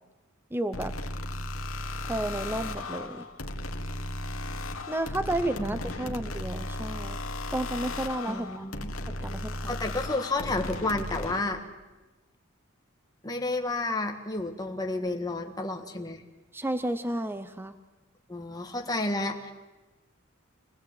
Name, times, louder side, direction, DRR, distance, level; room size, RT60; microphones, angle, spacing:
voice 1, 0.5-0.9 2.1-3.3 4.9-7.2 7.5-8.6 9.1-9.8 16.5-17.7, right 1 dB, 10° right, 10 dB, 0.7 m, -32 dB
sound 1, 0.7-11.4, left 2 dB, 70° left, 1.7 m, -35 dB
voice 2, 8.3-8.9 9.7-11.6 13.2-16.2 18.3-19.5, left 2 dB, 20° left, 3 dB, 1.6 m, -31 dB
25.0 x 17.0 x 8.8 m, 1.2 s
head